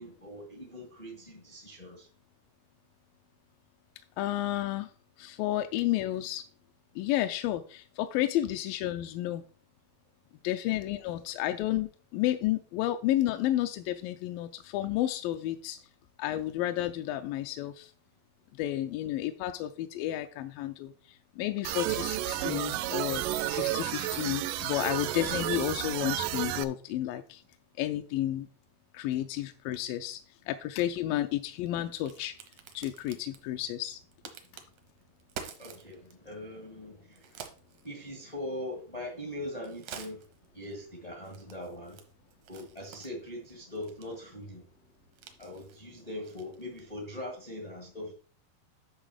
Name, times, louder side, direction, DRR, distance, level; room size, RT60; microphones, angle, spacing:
voice 1, 0.0-2.1 35.6-37.4 37.8-40.2 40.5-42.0 42.5-44.6 45.4-48.1, left 1 dB, 50° left, 0.4 m, -41 dB
voice 2, 4.2-4.9 5.2-6.4 7.0-9.4 10.4-15.8 16.2-17.9 18.6-20.9 21.4-27.4 27.8-28.5 28.9-30.2 30.5-32.4 32.7-34.0, left 13 dB, 85° left, 2.1 m, -31 dB
sound 1, 21.6-26.6, right 14 dB, 85° right, 1.8 m, -32 dB
Crack, 30.9-47.0, right 7 dB, 70° right, 1.6 m, -51 dB
10.5 x 3.5 x 6.4 m
omnidirectional pair, 4.5 m